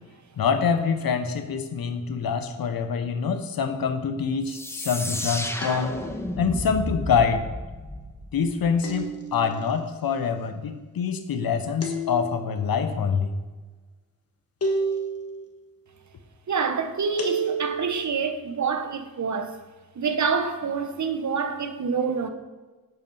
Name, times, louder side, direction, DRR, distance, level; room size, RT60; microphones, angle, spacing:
voice 1, 0.4-6.0 6.4-7.4 8.3-13.3, left 6 dB, 80° left, 0.8 m, -25 dB
sound 1, 4.5-9.0, left 1 dB, 5° left, 0.7 m, -33 dB
sound 2, 5.6-6.4 8.8-9.6 11.8-12.6 14.6-15.4 17.2-18.0, right 2 dB, 45° left, 1.3 m, -30 dB
voice 2, 16.5-19.6 19.9-22.3, right 5 dB, 55° right, 0.9 m, -27 dB
7.9 x 4.4 x 5.4 m
wide cardioid pair, 85°, 35 cm